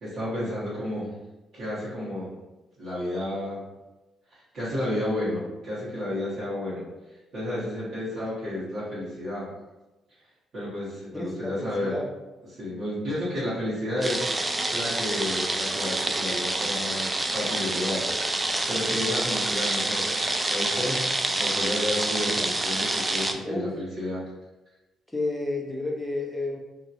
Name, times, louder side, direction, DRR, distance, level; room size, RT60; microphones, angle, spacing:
voice 1, 0.0-1.1 1.5-2.3 2.8-3.6 4.3-6.9 7.3-9.5 10.5-12.0 12.5-17.1 17.3-18.0 18.7-20.1 20.4-21.1 21.3-24.2, left 1 dB, 65° right, -12 dB, 1.5 m, -31 dB
voice 2, 11.1-12.1 23.4-23.7 25.1-26.6, left 2 dB, 5° left, -2 dB, 0.7 m, -31 dB
sound 1, 14.0-23.3, right 2 dB, 20° right, 0.3 m, -27 dB
2.9 x 2.8 x 2.6 m, 1.1 s
cardioid pair, 85°, 0 cm